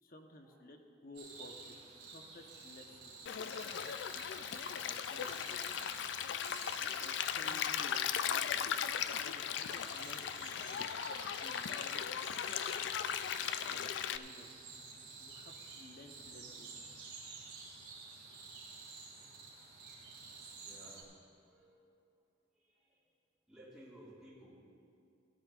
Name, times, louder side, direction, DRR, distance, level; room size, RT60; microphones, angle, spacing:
voice 1, 0.0-1.6 2.1-3.1 4.8-5.9 7.0-8.7 9.2-10.5 11.4-12.0 13.7-14.5 15.2-16.7, left 1 dB, 50° left, 3 dB, 0.9 m, -54 dB
sound 1, 1.1-21.0, right 4 dB, 70° right, 2.4 m, -52 dB
Stream, 3.3-14.2, left 8 dB, 70° left, 0.3 m, -37 dB
sound 2, 3.9-12.1, right 2 dB, 30° right, 1.7 m, -64 dB
voice 2, 19.6-21.1 21.5-21.9 22.5-23.1 23.5-24.5, right 1 dB, ahead, -10 dB, 3.1 m, -60 dB
17.0 x 13.0 x 2.4 m, 2.5 s
head